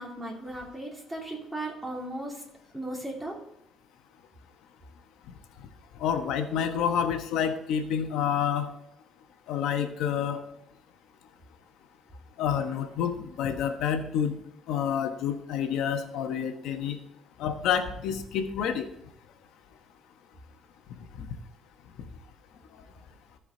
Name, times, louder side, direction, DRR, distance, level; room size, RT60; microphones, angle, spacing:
voice 1, 0.0-2.4 2.7-3.4, right 1 dB, 10° right, -3 dB, 3.0 m, -36 dB
voice 2, 5.9-8.7 9.5-10.4 12.4-14.3 14.7-17.0 17.4-18.9 21.2-21.3, left 8 dB, 85° left, 7 dB, 1.1 m, -28 dB
14.5 x 4.9 x 3.9 m, 0.78 s
cardioid pair, 115°, 0 cm